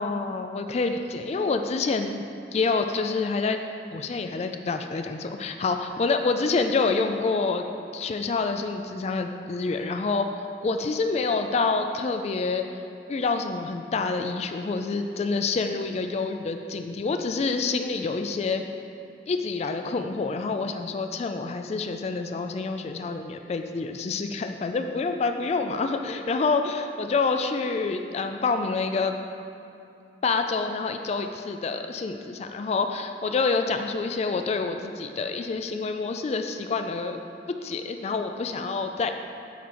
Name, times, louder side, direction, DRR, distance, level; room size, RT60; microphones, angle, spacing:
voice 1, 0.0-2.2 2.5-3.6 3.9-7.7 7.9-10.3 10.6-12.7 13.1-18.6 19.3-29.2 30.2-37.2 37.5-39.1, left 4 dB, 35° left, 7 dB, 0.3 m, -27 dB
8.3 x 4.2 x 4.3 m, 2.7 s
head